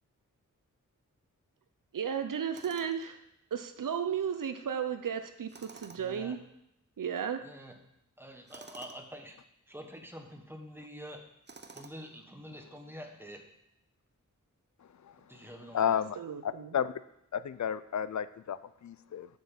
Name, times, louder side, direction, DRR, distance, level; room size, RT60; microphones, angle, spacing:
voice 1, 1.9-3.2 3.5-6.4 7.0-7.4 16.2-16.7, right 8 dB, 80° right, 8 dB, 0.7 m, -34 dB
Tools, 2.5-3.1 5.5-6.2 8.5-9.0 11.5-12.2, right 3 dB, 35° right, 0.8 m, -51 dB
voice 2, 6.0-6.4 7.4-7.8 8.2-9.4 9.7-11.2 11.7-13.4 15.3-16.1, equal, 5° right, 3 dB, 1.3 m, -47 dB
voice 3, 15.7-16.2 16.4-16.9 17.3-19.3, left 8 dB, 60° left, 15 dB, 0.5 m, -32 dB
7.3 x 6.1 x 7.2 m, 0.80 s
wide cardioid pair, 85°, 32 cm